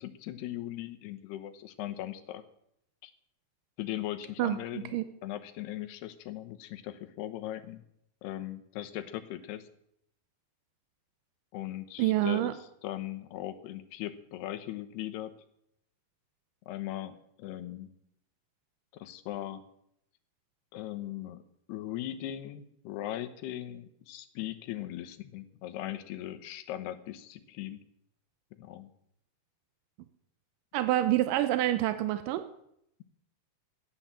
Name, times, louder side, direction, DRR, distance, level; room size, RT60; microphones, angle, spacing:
voice 1, 0.0-2.4 3.0-3.1 3.8-7.8 8.2-9.7 11.5-12.6 12.8-15.3 16.7-17.9 18.9-19.6 20.7-21.4 21.7-27.8 28.6-28.9, left 13 dB, 80° left, 10 dB, 3.0 m, -39 dB
voice 2, 4.4-5.0 12.0-12.5 30.7-32.4, right 14 dB, 80° right, 11 dB, 1.9 m, -27 dB
14.5 x 10.0 x 7.4 m, 0.75 s
omnidirectional pair, 4.8 m